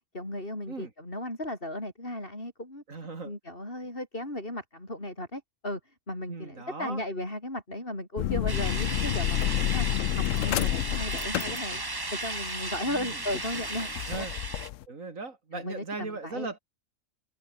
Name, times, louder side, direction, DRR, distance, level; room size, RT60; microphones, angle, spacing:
voice 1, 0.1-2.8 3.2-5.8 6.1-9.9 10.1-14.3 15.5-16.6, left 1 dB, 40° left, 7.7 m, -36 dB
voice 2, 2.9-3.3 6.3-7.0 12.9-13.2 14.1-14.3 14.9-16.6, right 3 dB, 70° right, 3.0 m, -38 dB
sound 1, 8.2-14.8, left 13 dB, 70° left, 1.0 m, -30 dB
sound 2, 8.5-14.7, right 2 dB, 15° right, 1.4 m, -35 dB
open air
omnidirectional pair, 1.5 m